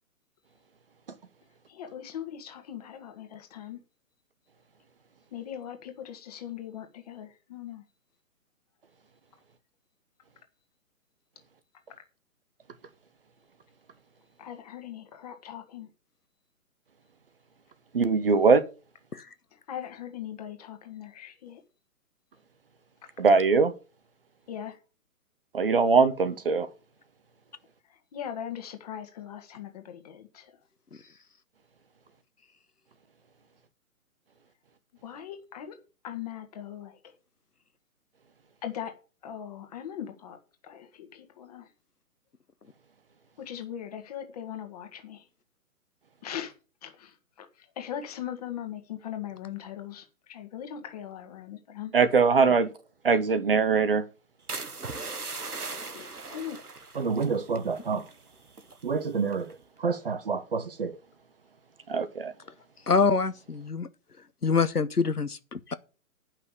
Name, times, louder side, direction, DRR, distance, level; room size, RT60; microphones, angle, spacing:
voice 1, 1.7-3.8 5.3-7.8 14.4-15.9 19.5-21.6 24.5-24.8 28.1-30.5 35.0-35.7 36.0-37.0 38.6-38.9 39.2-40.4 40.6-41.7 43.4-45.2 46.2-46.5 46.8-51.9 52.4-52.6 55.8-56.6, left 10 dB, 25° left, 1.6 m, -40 dB
voice 2, 17.9-18.6 23.2-23.7 25.5-26.7 51.9-52.7 53.0-54.0 57.0-58.0 58.8-59.5 59.8-61.0 61.9-62.3, right 5 dB, 40° right, 0.8 m, -23 dB
sound 1, 54.5-58.2 58.5-58.9 59.3-59.6, right 3 dB, 80° right, 1.3 m, -39 dB
voice 3, 62.9-63.9 64.4-65.7, left 5 dB, 85° left, 1.0 m, -25 dB
10.5 x 5.8 x 6.9 m
figure-of-eight pair, 135°, 45 cm